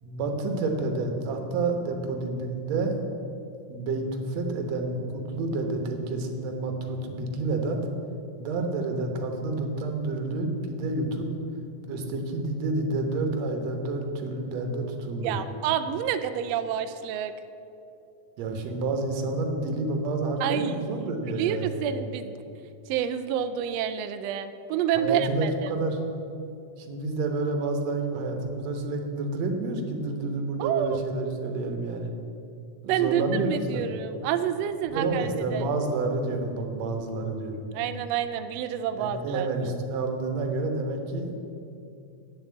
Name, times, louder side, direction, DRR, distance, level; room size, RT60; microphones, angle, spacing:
voice 1, 0.0-3.0 3.7-7.8 8.4-11.3 11.9-15.4 18.4-21.9 25.0-26.0 26.8-32.1 32.8-33.8 34.9-38.0 39.0-41.4, right 3 dB, 65° right, 4 dB, 2.2 m, -29 dB
voice 2, 15.2-17.3 20.4-22.4 22.9-25.7 30.6-31.0 32.9-35.7 37.7-39.7, right 9 dB, 85° right, 9 dB, 1.4 m, -29 dB
8.9 x 7.3 x 8.5 m, 2.7 s
omnidirectional pair, 3.4 m